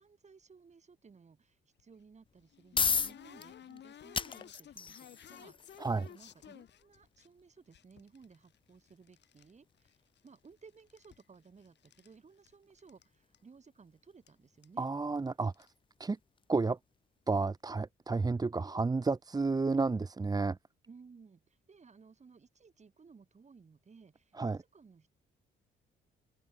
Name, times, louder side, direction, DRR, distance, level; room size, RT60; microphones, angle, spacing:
voice 1, 0.0-14.9 20.9-25.2, right 5 dB, 35° right, 6.3 m, -59 dB
sound 1, 1.8-7.3 7.7-9.5 9.8-10.5 10.8-12.1 12.5-12.6 12.8-13.0 13.3-13.4 14.3-14.4 14.6-14.9 15.4-15.7, left 10 dB, 60° left, 2.2 m, -54 dB
sound 2, 2.3-17.1, left 5 dB, 25° left, 0.5 m, -41 dB
voice 2, 14.8-15.5 16.0-16.2 16.5-16.8 17.3-20.6 24.4-24.6, right 3 dB, 20° right, 0.8 m, -31 dB
open air
cardioid pair, 90°, 20 cm